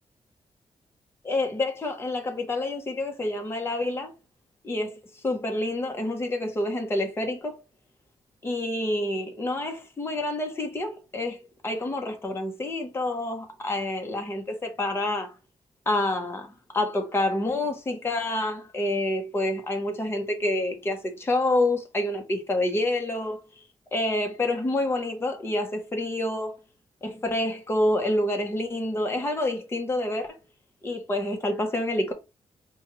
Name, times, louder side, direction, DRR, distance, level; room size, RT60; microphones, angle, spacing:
voice 1, 1.2-4.1 4.6-7.5 8.4-11.4 11.6-15.3 15.9-16.5 16.7-23.4 23.9-26.6 27.0-30.4 30.8-32.1, left 1 dB, 20° left, 0.9 m, -28 dB
5.2 x 2.3 x 3.0 m
wide cardioid pair, 130°, 11 cm